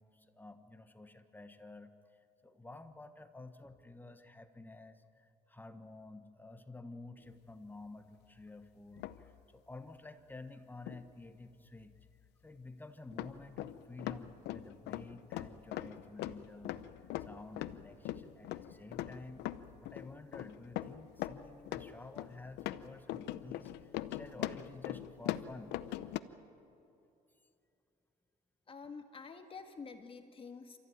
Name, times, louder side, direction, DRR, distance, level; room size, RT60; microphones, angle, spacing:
voice 1, 0.0-1.9 2.4-11.9 12.4-16.9 17.2-19.5 19.7-25.7, left 2 dB, 10° left, 9 dB, 1.3 m, -51 dB
sound 1, 9.0-9.3 10.9-11.0 12.0-12.1 13.1-26.2, left 13 dB, 85° left, 0.8 m, -41 dB
voice 2, 28.7-30.8, left 5 dB, 35° left, 6 dB, 1.7 m, -48 dB
29.0 x 14.5 x 9.6 m, 2.7 s
cardioid pair, 110°, 17 cm